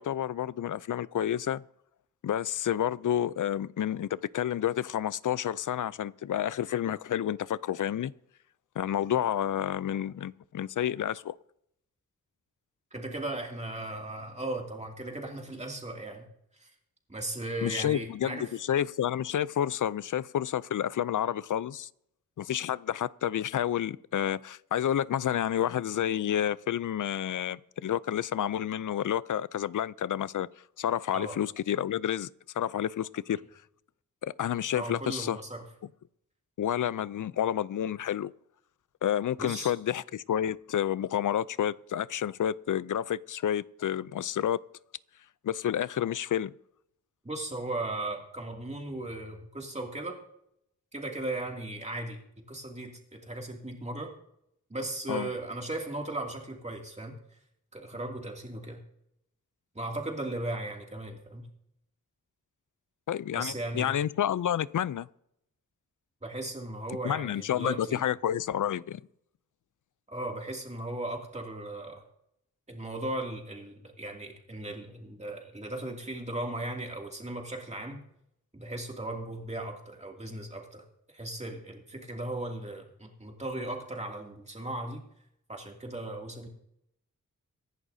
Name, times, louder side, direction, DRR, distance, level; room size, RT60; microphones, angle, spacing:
voice 1, 0.0-1.6 2.2-8.1 8.8-11.3 17.6-21.9 22.4-30.5 30.8-32.3 32.6-33.4 34.2-35.4 36.6-38.3 39.0-44.6 45.4-46.5 55.1-55.3 63.1-65.1 67.0-69.0, left 10 dB, 75° left, 0.5 m, -30 dB
voice 2, 12.9-16.3 16.5-16.7 17.1-18.4 31.1-31.4 34.7-35.7 39.4-39.7 47.2-50.2 50.9-52.2 52.5-54.1 54.7-57.1 57.7-58.8 59.7-61.5 63.3-63.9 66.2-68.0 70.1-72.0 72.7-78.0 78.5-85.0 85.5-86.5, right 2 dB, 20° right, 2.5 m, -37 dB
24.5 x 11.0 x 2.7 m
wide cardioid pair, 110°, 31 cm